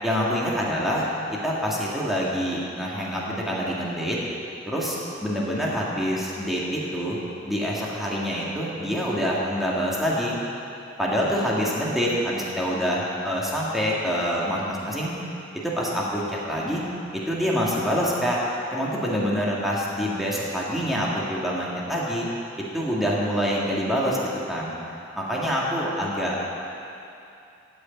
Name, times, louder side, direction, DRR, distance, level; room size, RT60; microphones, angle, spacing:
voice 1, 0.0-1.1 1.4-4.2 4.7-5.0 5.2-7.2 7.5-10.4 11.0-15.1 15.5-16.8 17.1-18.4 18.7-22.3 22.7-24.7 25.2-26.4, equal, ahead, -6 dB, 2.1 m, -26 dB
15.0 x 6.6 x 8.7 m, 2.7 s
head